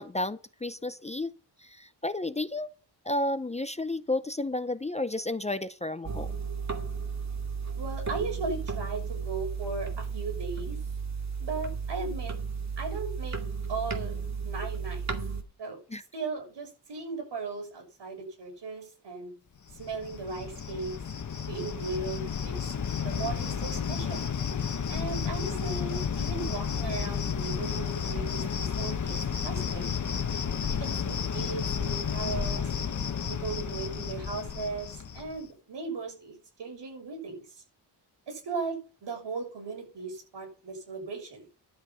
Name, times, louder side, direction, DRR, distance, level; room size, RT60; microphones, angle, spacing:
voice 1, 0.0-1.3 1.6-2.7 3.0-6.3 15.9-16.0, left 2 dB, 15° left, 0.5 m, -32 dB
sound 1, 6.0-15.4, right 5 dB, 40° right, 2.3 m, -34 dB
voice 2, 7.8-10.8 11.4-12.4 12.8-13.4 13.7-14.1 14.4-15.0 15.6-15.8 16.1-19.4 19.7-20.9 21.4-22.7 23.0-24.2 24.9-29.9 30.7-32.7 33.3-37.6 38.3-41.4, right 4 dB, 85° right, 6.8 m, -37 dB
Cricket, 19.7-35.4, left 7 dB, 45° left, 1.1 m, -32 dB
12.0 x 8.0 x 5.5 m
wide cardioid pair, 120°, 42 cm